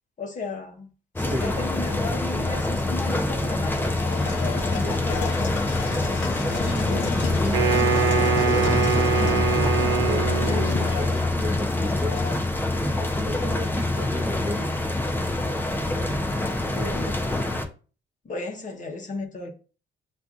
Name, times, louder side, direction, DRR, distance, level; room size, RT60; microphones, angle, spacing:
voice 1, 0.2-0.9 1.2-5.3 6.8-7.3 16.4-17.3 18.2-19.5, left 3 dB, 40° left, 0.9 m, -35 dB
sound 1, 1.2-17.7, left 2 dB, 10° left, 0.6 m, -25 dB
sound 2, 3.4-13.9, left 7 dB, 65° left, 0.6 m, -35 dB
voice 2, 6.6-9.4 10.0-12.4 12.7-14.7, equal, 10° right, 0.9 m, -34 dB
Wind instrument woodwind instrument, 7.5-11.0, right 6 dB, 70° right, 0.8 m, -24 dB
6.7 x 2.5 x 2.4 m
cardioid pair, 90°, 20 cm